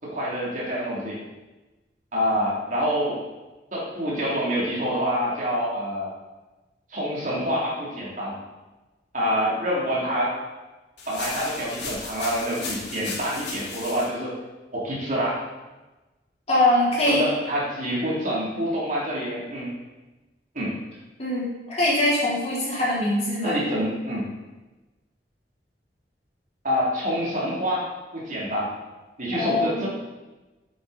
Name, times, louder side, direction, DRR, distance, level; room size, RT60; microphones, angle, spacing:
voice 1, 0.0-1.2 2.1-3.2 3.7-6.1 6.9-8.4 9.1-10.3 11.1-14.3 14.7-15.4 17.0-19.7 20.5-20.8 23.4-24.3 26.6-27.9 28.1-28.7 29.2-29.9, equal, 50° right, -5 dB, 3.1 m, -26 dB
sound 1, 11.0-14.0, left 3 dB, 85° left, 2.7 m, -35 dB
voice 2, 16.5-17.3 21.2-23.6 29.3-29.9, left 1 dB, 40° left, -7 dB, 3.7 m, -23 dB
8.8 x 8.8 x 4.2 m, 1.1 s
head